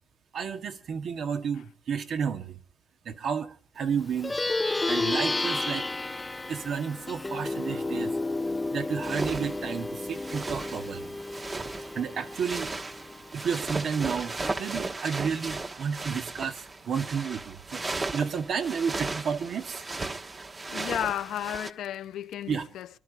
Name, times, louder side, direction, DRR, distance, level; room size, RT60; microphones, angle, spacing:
voice 1, 0.3-2.6 3.1-3.5 3.8-4.3 4.9-5.9 6.5-8.1 8.7-11.1 12.0-12.7 13.3-14.3 14.6-17.8 18.1-19.8 22.5-22.7, right 6 dB, 65° right, 1.9 m, -31 dB
Plucked string instrument, 4.1-13.8, left 2 dB, 15° left, 0.6 m, -32 dB
sound 1, 9.0-21.7, right 3 dB, 30° right, 1.3 m, -36 dB
voice 2, 20.7-22.9, left 11 dB, 75° left, 0.8 m, -33 dB
26.5 x 11.5 x 4.1 m
cardioid pair, 90°, 0 cm